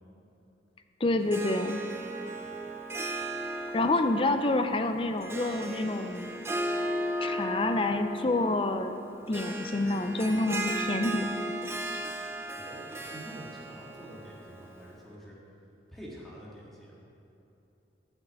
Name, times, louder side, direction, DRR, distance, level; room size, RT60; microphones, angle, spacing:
voice 1, 1.0-1.8 3.7-6.3 7.2-9.0 9.3-11.5, left 2 dB, 30° left, 8 dB, 0.5 m, -28 dB
Harp, 1.2-15.0, right 1 dB, 15° right, 0.7 m, -36 dB
voice 2, 12.5-15.4 15.9-17.0, equal, ahead, -6 dB, 1.8 m, -47 dB
8.9 x 6.2 x 8.1 m, 2.9 s
head